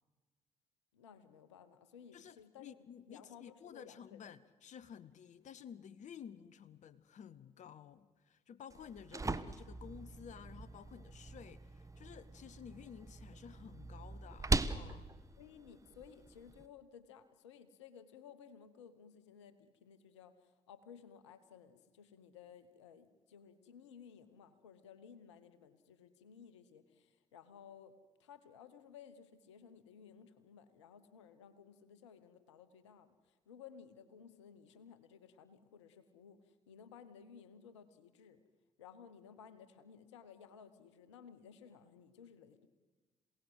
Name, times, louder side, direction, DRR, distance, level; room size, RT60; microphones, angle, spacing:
voice 1, 0.9-2.8 3.1-4.2 15.4-27.9 28.2-38.4 38.8-42.7, left 7 dB, 90° left, 13 dB, 1.1 m, -57 dB
voice 2, 2.1-15.1, left 8 dB, 55° left, 17 dB, 0.9 m, -53 dB
sound 1, 8.7-16.7, right 3 dB, 20° right, 1.3 m, -41 dB
27.5 x 17.5 x 8.0 m, 1.3 s
hypercardioid pair, 45°, 15 cm